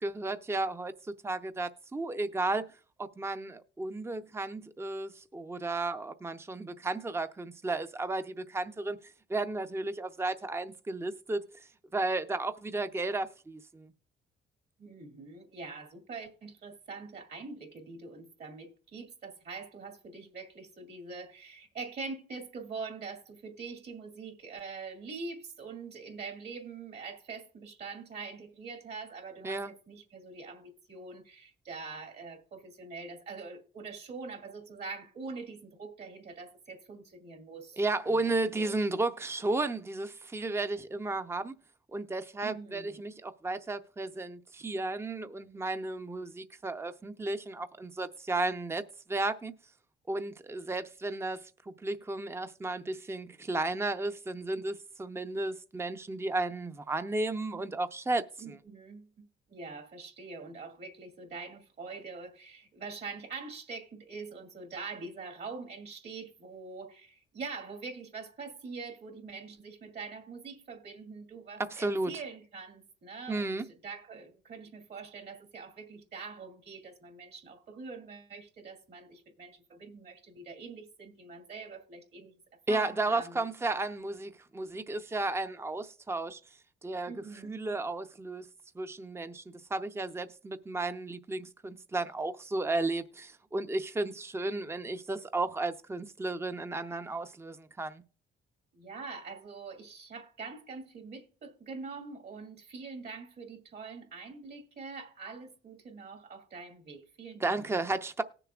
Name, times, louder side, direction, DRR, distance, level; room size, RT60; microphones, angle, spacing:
voice 1, 0.0-0.9 1.2-2.6 3.0-13.9 29.4-29.7 37.8-41.6 41.9-49.5 50.1-58.6 71.6-72.1 73.3-73.7 82.7-86.4 86.8-87.1 87.4-88.5 88.7-98.0 107.4-108.2, right 2 dB, 15° right, 0.6 m, -33 dB
voice 2, 14.8-38.2 38.5-38.7 42.4-43.0 58.4-73.5 73.8-83.4 87.1-87.6 98.7-107.7, right 4 dB, 55° right, 2.4 m, -44 dB
18.5 x 6.9 x 2.4 m
cardioid pair, 90°, 20 cm